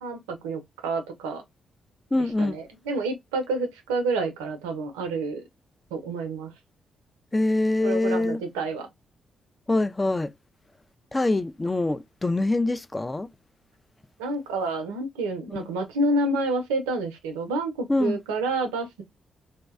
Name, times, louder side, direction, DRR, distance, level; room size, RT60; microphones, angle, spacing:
voice 1, 0.0-1.4 2.4-5.4 5.9-6.5 7.8-8.9 14.2-19.0, right 2 dB, 85° right, 0.5 m, -29 dB
voice 2, 2.1-2.6 7.3-8.4 9.7-10.3 11.1-13.3 15.6-15.7 17.9-18.2, left 2 dB, 25° left, 0.3 m, -24 dB
2.6 x 2.1 x 2.3 m
hypercardioid pair, 40°, 0 cm